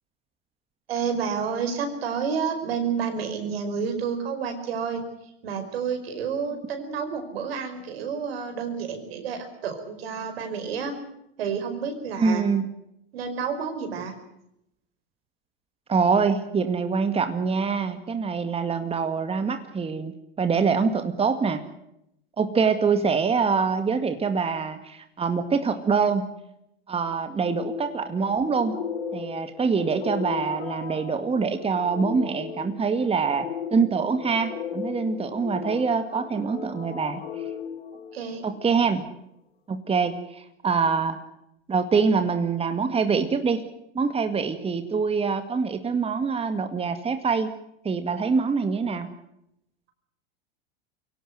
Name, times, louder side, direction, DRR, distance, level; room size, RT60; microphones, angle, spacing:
voice 1, 0.9-5.0 5.4-10.9 11.4-12.4 13.1-14.1 37.9-38.4, right 6 dB, 75° right, 7 dB, 5.1 m, -30 dB
voice 2, 12.2-12.6 15.9-21.6 22.4-26.3 26.9-28.8 29.1-33.5 33.7-37.2 38.4-39.1 39.7-41.2 41.7-43.6 43.9-47.5 47.8-49.1, right 5 dB, 20° right, 8 dB, 2.1 m, -24 dB
sound 1, 27.4-38.7, left 7 dB, 85° left, 2.3 m, -36 dB
23.5 x 17.5 x 8.0 m, 0.80 s
hypercardioid pair, 100°, 30 cm